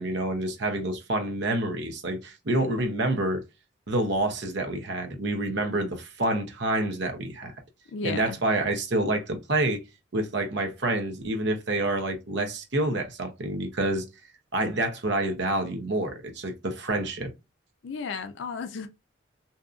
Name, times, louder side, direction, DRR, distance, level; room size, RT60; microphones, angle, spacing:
voice 1, 0.0-3.4 3.9-7.5 8.0-9.8 10.1-14.0 14.5-17.3, right 2 dB, 60° right, 0.7 m, -28 dB
voice 2, 7.9-8.4 17.8-18.9, left 5 dB, 70° left, 0.4 m, -34 dB
2.7 x 2.5 x 2.4 m
head